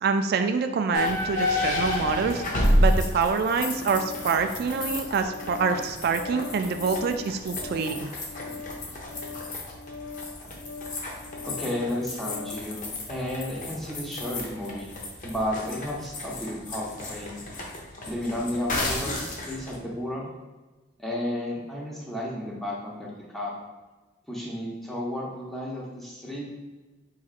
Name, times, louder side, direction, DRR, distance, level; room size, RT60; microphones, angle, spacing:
voice 1, 0.0-2.4 2.8-8.1, right 5 dB, 55° right, 7 dB, 0.3 m, -26 dB
sound 1, 0.9-19.8, left 1 dB, 45° left, 0.8 m, -30 dB
Organ, 3.7-12.7, left 4 dB, 85° left, 0.6 m, -42 dB
voice 2, 11.4-14.9 15.2-17.4 18.0-20.3 21.0-23.5 24.3-26.5, left 1 dB, ahead, -4 dB, 0.9 m, -33 dB
4.8 x 4.1 x 2.4 m, 1.2 s
head